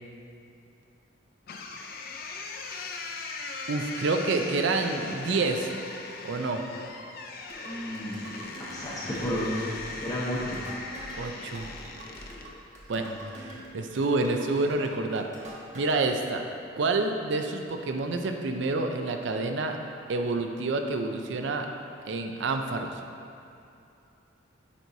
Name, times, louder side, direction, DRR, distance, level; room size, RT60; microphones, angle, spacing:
sound 1, 1.5-12.5, left 3 dB, 50° left, 0.4 m, -39 dB
voice 1, 3.7-5.7 6.2-6.6 11.2-11.7 12.9-13.1 13.4-15.3 15.7-16.4 16.8-19.8 20.1-21.7 22.1-23.0, right 3 dB, 60° right, 5 dB, 0.5 m, -28 dB
sound 2, 7.4-16.1, right 1 dB, 35° right, 0.7 m, -46 dB
voice 2, 7.6-9.6 10.0-10.6 12.9-13.2, equal, 20° left, -8 dB, 0.8 m, -33 dB
8.4 x 4.6 x 2.7 m, 2.7 s
head